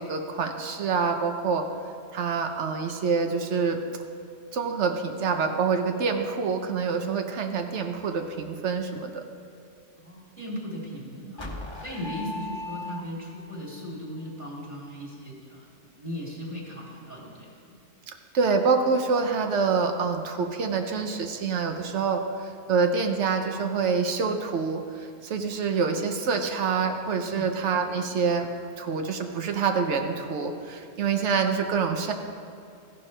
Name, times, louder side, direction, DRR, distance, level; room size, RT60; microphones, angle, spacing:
voice 1, 0.0-1.7 2.1-3.8 4.5-9.2 11.2-11.3 18.3-28.5 28.8-32.1, right 5 dB, 85° right, 5 dB, 1.1 m, -26 dB
voice 2, 10.0-15.7 15.9-17.8 27.3-27.6, equal, 45° right, -4 dB, 3.0 m, -38 dB
sound 1, 11.4-13.5, left 2 dB, 25° left, 1.0 m, -37 dB
15.0 x 11.5 x 3.3 m, 2.5 s
omnidirectional pair, 1.2 m